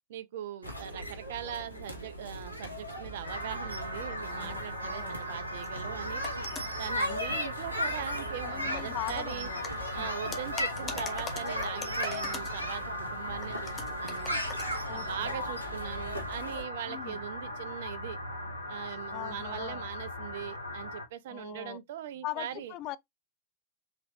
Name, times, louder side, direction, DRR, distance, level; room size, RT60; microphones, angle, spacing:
voice 1, 0.1-6.2 6.8-9.5 9.9-14.4 14.9-18.2 18.7-22.7, right 10 dB, 55° right, 0.5 m, -41 dB
sound 1, 0.6-16.6, equal, 85° right, 0.9 m, -37 dB
sound 2, 3.2-21.1, equal, 90° left, 0.8 m, -39 dB
voice 2, 4.3-5.2 7.1-7.4 8.4-9.6 9.9-10.1 14.9-15.5 16.9-17.2 19.1-19.8 21.3-21.8 22.2-23.0, left 16 dB, 40° left, 0.3 m, -41 dB
sound 3, 5.1-5.2 5.6-5.8 6.2-7.6 9.1-9.2 9.6-12.6 13.4-14.8, left 4 dB, 20° left, 1.0 m, -44 dB
3.9 x 3.1 x 2.7 m
figure-of-eight pair, 90°, 0 cm